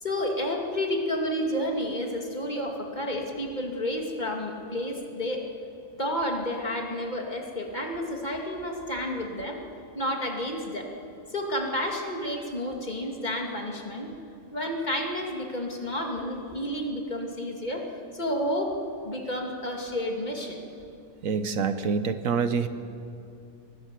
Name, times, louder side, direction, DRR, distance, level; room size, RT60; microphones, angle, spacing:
voice 1, 0.0-5.5 6.0-9.6 9.9-10.9 11.3-14.1 14.5-17.9 18.1-18.8 19.0-20.6, left 1 dB, 30° left, 1 dB, 2.6 m, -30 dB
voice 2, 21.2-22.7, right 5 dB, 70° right, 10 dB, 1.3 m, -26 dB
23.5 x 18.0 x 7.6 m, 2.7 s
omnidirectional pair, 1.5 m